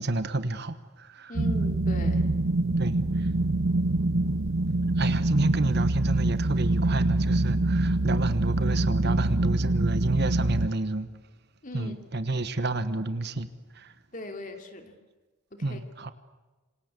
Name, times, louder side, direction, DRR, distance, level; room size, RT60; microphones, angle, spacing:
voice 1, 0.0-1.3 2.8-3.0 5.0-11.1 11.7-13.5 13.7-13.9 15.6-16.1, right 2 dB, 50° right, 1.2 m, -29 dB
voice 2, 1.3-2.3 11.6-11.9 14.1-14.9 15.5-15.8, left 1 dB, 40° left, 2.9 m, -39 dB
sound 1, 1.3-10.7, right 2 dB, 75° right, 1.0 m, -25 dB
27.0 x 25.5 x 8.3 m
head